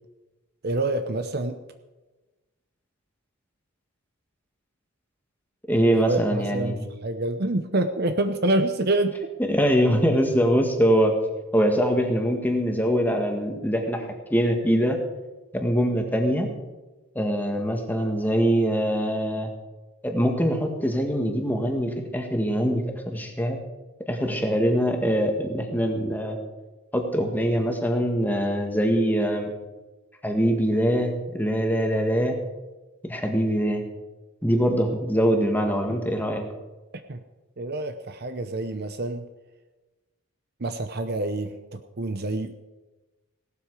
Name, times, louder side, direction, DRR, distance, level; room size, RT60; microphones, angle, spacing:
voice 1, 0.6-1.6 5.9-9.2 37.1-37.2 37.6-39.3 40.6-42.5, right 2 dB, 45° right, 8 dB, 0.7 m, -27 dB
voice 2, 5.7-6.8 9.5-11.1 11.5-15.0 15.5-16.5 17.2-19.5 20.0-23.6 24.1-26.4 26.9-29.5 30.2-32.3 33.0-33.8 34.4-36.4, equal, 10° left, 3 dB, 1.8 m, -23 dB
17.5 x 12.5 x 4.9 m, 1.1 s
head